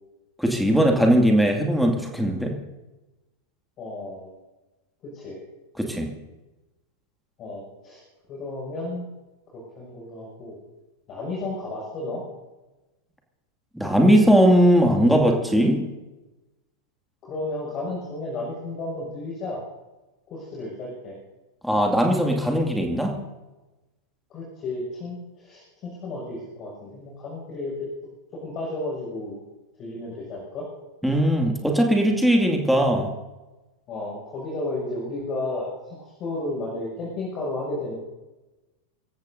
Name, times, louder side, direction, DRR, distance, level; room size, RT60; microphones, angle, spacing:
voice 1, 0.4-2.6 5.8-6.1 13.8-15.9 21.6-23.2 31.0-33.1, equal, ahead, 1 dB, 2.4 m, -19 dB
voice 2, 3.8-4.3 5.0-5.4 7.4-8.0 8.3-9.1 9.5-10.6 11.1-12.2 17.2-19.6 20.3-21.2 24.3-27.9 28.3-29.4 29.8-30.7 33.9-37.9, left 2 dB, 35° left, -4 dB, 6.4 m, -33 dB
26.5 x 16.5 x 2.8 m, 1.1 s
figure-of-eight pair, 90°, 0 cm